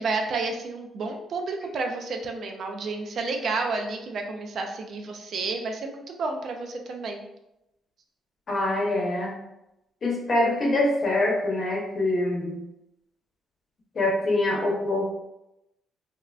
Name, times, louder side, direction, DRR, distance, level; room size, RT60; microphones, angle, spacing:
voice 1, 0.0-7.2, right 3 dB, 60° right, 4 dB, 0.4 m, -31 dB
voice 2, 8.5-9.3 10.0-12.6 13.9-15.1, left 2 dB, 45° left, -2 dB, 0.9 m, -24 dB
3.4 x 2.1 x 2.4 m, 0.88 s
cardioid pair, 90°, 0 cm